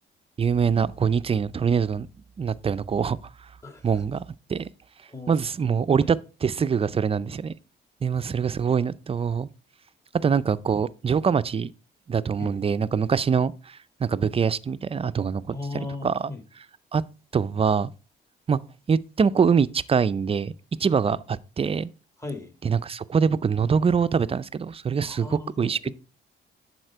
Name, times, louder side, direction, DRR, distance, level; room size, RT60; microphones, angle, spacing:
voice 1, 0.4-2.1 2.4-3.2 3.8-4.2 4.5-4.7 5.3-7.5 8.0-9.5 10.2-11.7 12.1-16.3 16.9-17.0 17.3-17.9 18.5-18.6 18.9-20.5 20.8-21.9 22.6-26.0, right 6 dB, 30° right, 0.4 m, -24 dB
voice 2, 3.6-4.0 5.1-5.3 5.7-6.1 12.4-12.6 15.5-16.4 22.2-22.5 25.0-26.0, left 2 dB, 15° left, 1.7 m, -37 dB
11.0 x 4.3 x 4.5 m
cardioid pair, 90°, 20 cm